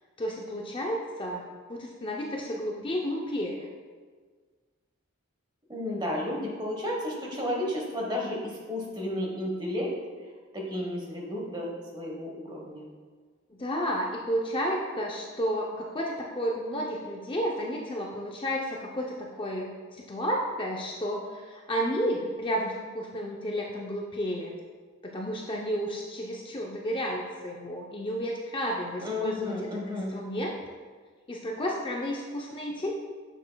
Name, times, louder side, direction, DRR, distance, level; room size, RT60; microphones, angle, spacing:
voice 1, 0.2-1.4 1.7-3.7 13.6-24.5 25.0-30.6 31.3-32.9, equal, 25° left, -1 dB, 0.5 m, -32 dB
voice 2, 5.7-10.0 10.5-12.9 29.0-30.1, left 1 dB, 20° right, -1 dB, 1.1 m, -32 dB
8.8 x 6.6 x 2.2 m, 1.5 s
head